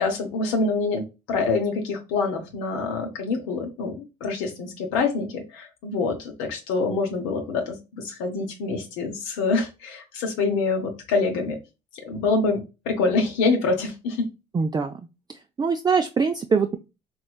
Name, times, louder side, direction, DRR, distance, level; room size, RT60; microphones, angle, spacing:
voice 1, 0.0-11.6 12.1-14.3, left 4 dB, 75° left, 2 dB, 0.8 m, -26 dB
voice 2, 14.5-14.9 15.6-16.8, right 5 dB, 20° right, 6 dB, 0.4 m, -22 dB
3.1 x 3.0 x 2.3 m, 0.27 s
hypercardioid pair, 60°, 20 cm